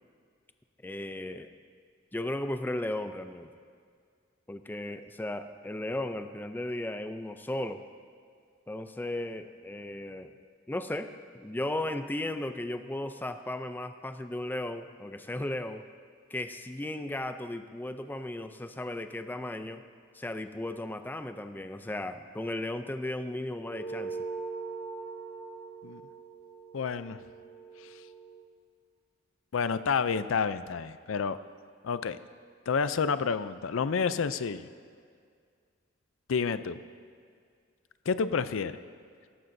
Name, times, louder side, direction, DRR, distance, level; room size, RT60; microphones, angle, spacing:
voice 1, 0.8-1.5 2.1-3.5 4.5-7.8 8.7-10.3 10.7-15.8 16.3-19.8 20.1-24.2, left 1 dB, 10° left, 9 dB, 0.4 m, -35 dB
sound 1, 23.7-28.5, right 4 dB, 35° left, 0.8 m, -41 dB
voice 2, 26.7-27.2 29.5-31.4 31.8-32.2 32.7-34.7 36.3-36.8 38.1-38.8, left 5 dB, 90° left, 13 dB, 0.5 m, -29 dB
17.5 x 14.0 x 2.7 m, 2.1 s
head